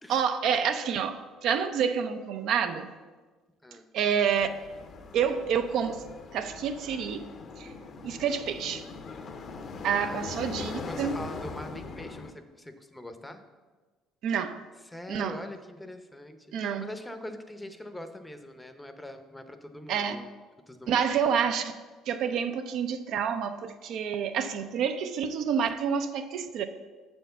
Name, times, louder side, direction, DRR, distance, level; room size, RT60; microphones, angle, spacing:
voice 1, 0.1-2.9 3.9-4.5 5.1-6.0 6.3-7.3 7.6-7.7 8.0-8.8 9.8-11.2 14.2-14.6 15.1-15.4 16.5-16.8 19.9-20.2 20.9-21.7 22.1-26.6, right 7 dB, 65° right, 8 dB, 0.5 m, -28 dB
sound 1, 4.3-12.3, left 4 dB, 40° left, 0.7 m, -41 dB
voice 2, 10.6-13.4 14.8-20.2 20.7-21.1, left 1 dB, 10° left, 8 dB, 0.6 m, -43 dB
7.2 x 4.4 x 6.7 m, 1.3 s
cardioid pair, 115°, 0 cm